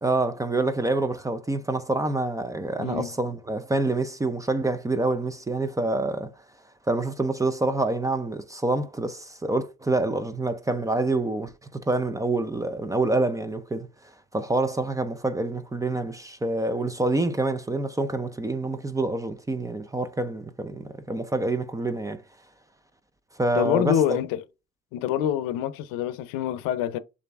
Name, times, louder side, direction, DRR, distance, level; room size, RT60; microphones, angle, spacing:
voice 1, 0.0-6.3 6.9-13.9 14.3-22.2 23.4-24.2, right 2 dB, 10° right, 0.4 m, -27 dB
voice 2, 2.8-3.1 23.5-24.4 24.9-27.0, left 10 dB, 85° left, 0.6 m, -26 dB
6.6 x 2.6 x 2.3 m
cardioid pair, 120°, 32 cm